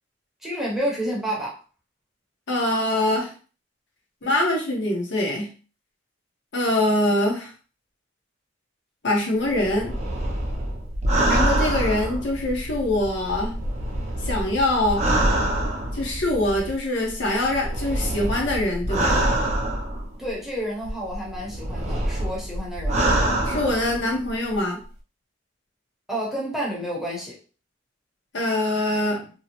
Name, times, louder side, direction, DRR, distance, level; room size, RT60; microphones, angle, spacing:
voice 1, 0.4-1.6 20.2-23.0 26.1-27.3, equal, ahead, -6 dB, 0.7 m, -29 dB
voice 2, 2.5-3.3 4.2-5.5 6.5-7.5 9.0-9.9 11.3-13.5 14.2-15.0 15.9-19.2 23.4-24.8 28.3-29.3, left 1 dB, 60° left, -1 dB, 0.8 m, -24 dB
sound 1, 9.5-12.8 13.3-16.2 17.1-20.3 20.9-24.3 24.5-24.6, right 1 dB, 35° right, 0.5 m, -25 dB
sound 2, 11.1-16.8, equal, 85° right, 0.6 m, -36 dB
2.7 x 2.0 x 2.9 m, 0.39 s
head